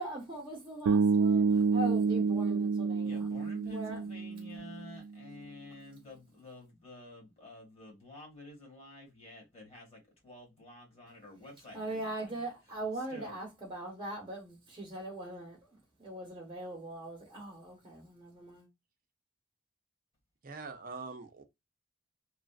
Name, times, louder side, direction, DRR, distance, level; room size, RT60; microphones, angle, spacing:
voice 1, 0.0-3.3 3.7-4.0 11.7-15.6 16.0-18.7, right 1 dB, 25° right, 0.9 m, -41 dB
Bass guitar, 0.9-4.9, right 5 dB, 90° right, 0.3 m, -28 dB
voice 2, 3.0-12.5 13.1-13.4, left 2 dB, 30° left, 1.5 m, -50 dB
voice 3, 20.4-21.4, right 4 dB, 40° right, 0.6 m, -43 dB
3.1 x 2.4 x 2.3 m
head